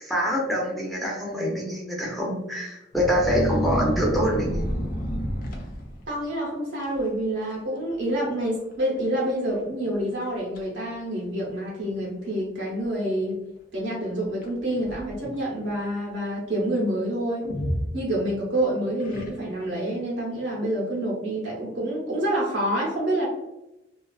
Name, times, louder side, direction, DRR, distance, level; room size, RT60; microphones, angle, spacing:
voice 1, 0.0-4.6, equal, ahead, -3 dB, 0.5 m, -25 dB
sound 1, 2.9-6.2 6.8-7.1 7.4-7.8 8.1-8.2 9.0-9.1 9.6-9.7 10.2-10.6 11.5-11.6 14.4-15.4 17.4-18.5 19.0-19.7, equal, 45° left, 0.5 m, -30 dB
voice 2, 6.1-13.4 13.7-17.5 17.9-23.3, right 1 dB, 70° right, -5 dB, 0.7 m, -27 dB
2.4 x 2.3 x 2.3 m, 0.94 s
head